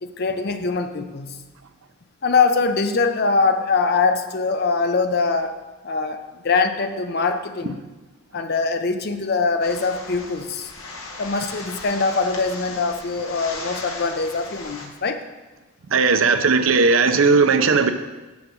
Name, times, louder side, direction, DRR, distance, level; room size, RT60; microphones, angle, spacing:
voice 1, 0.0-1.4 2.2-5.5 5.8-6.2 6.4-7.8 8.3-10.7 11.2-15.2, left 4 dB, 50° left, 8 dB, 0.5 m, -22 dB
sound 1, 9.6-14.9, left 3 dB, 80° left, 1.2 m, -37 dB
voice 2, 15.9-17.9, right 4 dB, 70° right, 9 dB, 0.5 m, -17 dB
7.1 x 4.8 x 6.4 m, 1.2 s
head